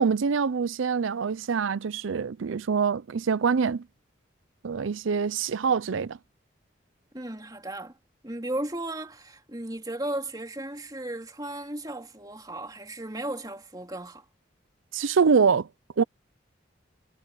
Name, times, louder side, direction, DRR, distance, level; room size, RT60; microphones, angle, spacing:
voice 1, 0.0-3.8 4.6-6.2 14.9-15.7 16.0-16.1, right 5 dB, 85° right, 0.5 m, -25 dB
voice 2, 7.1-8.0 8.2-14.2, right 1 dB, 20° right, 3.1 m, -35 dB
head